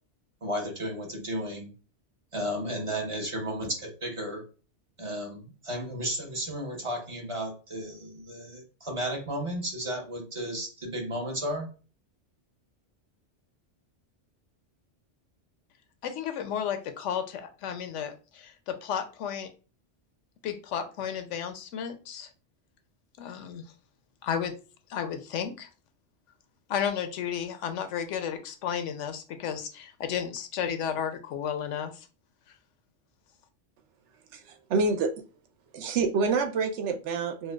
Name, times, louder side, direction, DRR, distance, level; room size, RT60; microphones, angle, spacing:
voice 1, 0.4-1.7 2.3-4.4 5.0-11.7, equal, 30° right, 1 dB, 0.7 m, -33 dB
voice 2, 16.0-19.5 20.4-22.3 23.2-23.6 24.2-24.5 24.9-25.7 26.7-32.1, left 8 dB, 85° left, 8 dB, 0.9 m, -33 dB
voice 3, 34.3-35.1 35.7-37.5, right 4 dB, 75° right, 7 dB, 0.9 m, -27 dB
4.4 x 2.2 x 2.2 m, 0.35 s
omnidirectional pair, 1.2 m